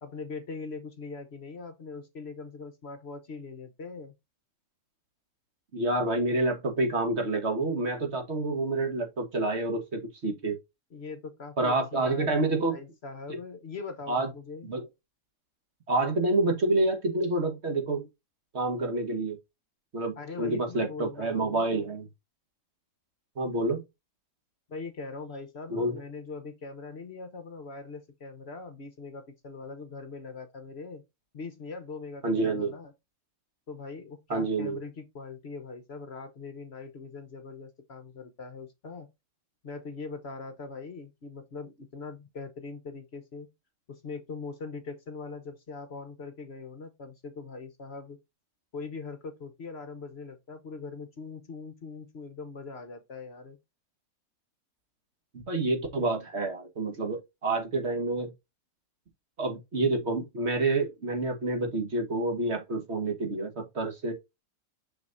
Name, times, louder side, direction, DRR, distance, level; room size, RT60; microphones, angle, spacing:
voice 1, 0.0-4.1 10.9-14.7 20.2-21.8 24.7-31.0 31.3-32.9 33.7-39.1 39.6-43.5 43.9-48.2 48.7-53.6, left 4 dB, 50° left, 1.2 m, -41 dB
voice 2, 5.7-10.6 11.6-12.8 14.1-14.3 14.6-14.8 15.9-18.1 18.5-19.4 19.9-22.1 23.4-23.8 25.7-26.0 32.2-32.7 34.3-34.8 55.3-58.3 59.4-64.1, right 2 dB, 50° right, 1.7 m, -28 dB
6.5 x 6.2 x 2.6 m
omnidirectional pair, 1.5 m